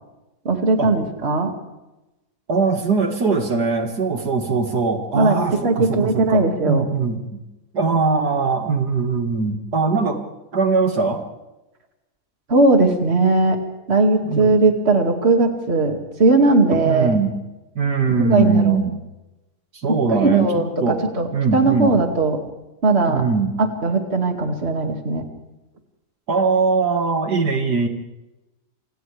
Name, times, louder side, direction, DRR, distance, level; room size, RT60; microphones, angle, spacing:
voice 1, 0.4-1.5 5.1-6.8 12.5-13.6 13.9-17.2 18.2-18.8 20.1-22.4 22.8-23.2 23.6-25.2, right 3 dB, 40° right, 3 dB, 2.6 m, -18 dB
voice 2, 2.5-7.4 7.7-10.2 10.5-11.2 14.2-14.5 16.8-17.4 17.8-19.0 19.7-21.0 21.3-21.9 23.1-23.6 26.3-27.9, right 4 dB, 70° right, 4 dB, 2.6 m, -21 dB
28.0 x 27.0 x 3.5 m, 1.0 s
omnidirectional pair, 1.8 m